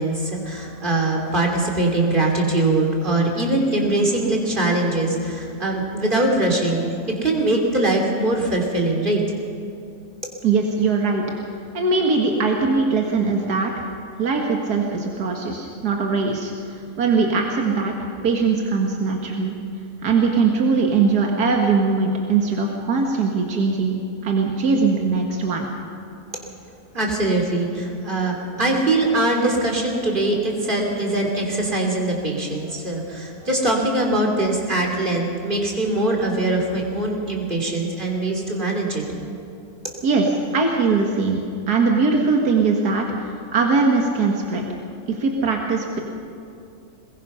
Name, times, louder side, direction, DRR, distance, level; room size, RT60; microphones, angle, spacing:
voice 1, 0.0-9.2 26.9-39.1, right 2 dB, 30° right, -1 dB, 3.5 m, -22 dB
voice 2, 10.4-11.2 11.7-13.8 14.2-19.5 20.0-24.0 24.2-25.7 40.0-41.4 41.7-44.6 45.1-46.0, right 4 dB, 80° right, 0 dB, 2.2 m, -21 dB
22.5 x 20.5 x 5.7 m, 2.6 s
omnidirectional pair, 1.6 m